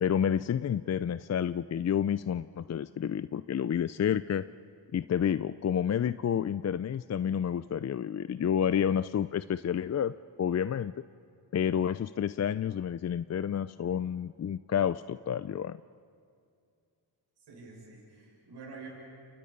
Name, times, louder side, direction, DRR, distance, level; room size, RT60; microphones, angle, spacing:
voice 1, 0.0-4.4 4.9-10.9 11.5-15.8, left 8 dB, 40° left, 15 dB, 0.5 m, -29 dB
voice 2, 17.5-18.9, right 4 dB, 75° right, -2 dB, 6.6 m, -47 dB
30.0 x 29.0 x 5.4 m, 2.4 s
cardioid pair, 55°, 42 cm